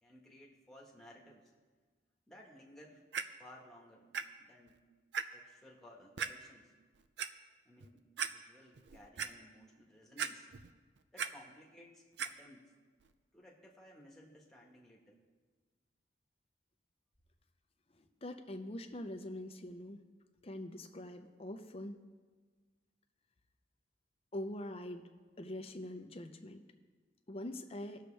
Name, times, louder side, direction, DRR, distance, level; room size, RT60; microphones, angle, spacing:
voice 1, 0.0-1.5 2.3-3.0 3.4-4.8 5.3-6.7 7.6-10.5 11.1-12.8 13.3-15.2, left 1 dB, ahead, -3 dB, 1.5 m, -58 dB
Clock, 3.1-3.2 4.1-4.2 4.7-4.8 5.1-5.2 6.2-6.3 7.0-7.3 7.8-7.9 8.2-8.3 8.8-9.3 10.2-10.7 11.0-11.3 12.2-12.3 13.0-13.1, right 7 dB, 75° right, 0.5 m, -37 dB
voice 2, 18.0-20.0 20.4-22.0 24.3-25.0 25.4-26.6 27.3-28.0, left 1 dB, 30° left, 6 dB, 0.7 m, -44 dB
19.5 x 6.6 x 3.4 m, 1.4 s
head